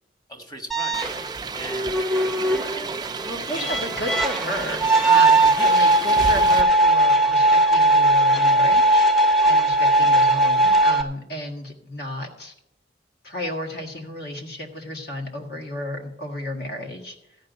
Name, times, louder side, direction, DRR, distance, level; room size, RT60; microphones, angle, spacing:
voice 1, 0.3-1.0 1.5-2.1 3.5-4.0 4.6-4.8 5.6-5.7 6.1-6.4 10.0-10.3, equal, 20° left, 3 dB, 1.5 m, -38 dB
sound 1, 0.7-11.0, right 1 dB, ahead, 0.7 m, -19 dB
sound 2, 0.9-6.6, right 5 dB, 20° right, 0.3 m, -32 dB
voice 2, 3.3-9.1 9.4-12.5 13.2-17.2, left 1 dB, 55° left, 2 dB, 1.9 m, -32 dB
14.0 x 5.3 x 9.2 m, 0.84 s
head